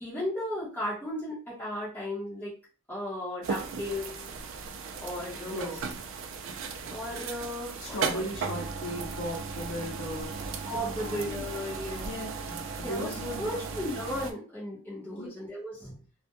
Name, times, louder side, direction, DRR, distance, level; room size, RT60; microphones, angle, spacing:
voice 1, 0.0-2.5 2.9-4.3 5.0-5.8 6.9-8.2 10.7-12.1 12.8-16.0, left 1 dB, 10° left, -9 dB, 0.7 m, -35 dB
sound 1, 3.4-14.3, right 5 dB, 60° right, 0.3 m, -36 dB
voice 2, 5.4-5.9 7.8-10.7 11.0-11.5 11.9-13.7 15.1-15.3, left 1 dB, 85° left, -3 dB, 0.6 m, -38 dB
2.2 x 2.1 x 2.8 m, 0.37 s
head